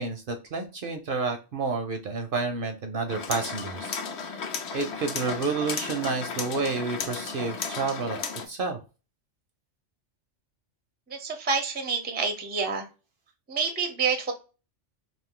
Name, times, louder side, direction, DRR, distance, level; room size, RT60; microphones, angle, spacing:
voice 1, 0.0-4.5 4.7-8.2 8.5-8.8, right 4 dB, 60° right, 5 dB, 0.6 m, -30 dB
sound 1, 3.1-8.5, left 5 dB, 65° left, 0.9 m, -34 dB
voice 2, 11.1-12.8 13.5-14.3, right 5 dB, 15° right, 3 dB, 0.3 m, -28 dB
2.5 x 2.5 x 3.5 m, 0.32 s
omnidirectional pair, 1.2 m